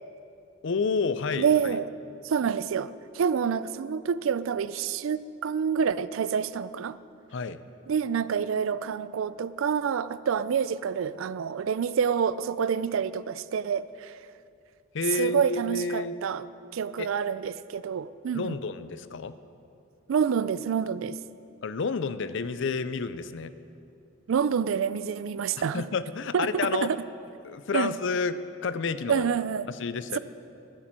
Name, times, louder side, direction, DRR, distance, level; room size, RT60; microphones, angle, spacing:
voice 1, 0.6-1.7 7.3-7.6 14.9-16.2 17.0-17.1 18.3-19.3 21.6-23.5 25.7-26.9 27.4-29.3 29.7-30.2, left 4 dB, 60° left, 13 dB, 0.5 m, -30 dB
voice 2, 1.4-1.9 2.2-7.0 7.9-14.2 15.2-16.5 16.7-18.6 20.1-21.2 24.3-25.9 26.3-27.0 27.7-27.9 29.1-29.7, right 7 dB, 70° right, 17 dB, 0.3 m, -27 dB
13.0 x 7.2 x 7.5 m, 2.6 s
head